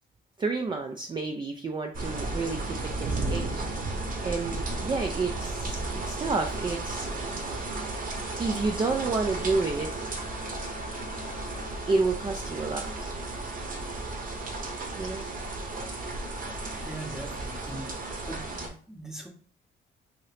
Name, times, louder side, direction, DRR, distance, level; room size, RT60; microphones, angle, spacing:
voice 1, 0.4-3.5 4.2-7.1 8.4-10.1 11.9-13.1 15.0-15.2, right 3 dB, 25° right, 3 dB, 0.4 m, -30 dB
sound 1, 1.9-18.7, right 2 dB, 45° right, 0.8 m, -34 dB
Bowed string instrument, 8.9-12.4, left 6 dB, 35° left, 0.6 m, -47 dB
voice 2, 16.8-18.0 18.3-19.3, right 1 dB, ahead, 1 dB, 0.8 m, -41 dB
2.8 x 2.8 x 3.3 m, 0.43 s
cardioid pair, 90°, 20 cm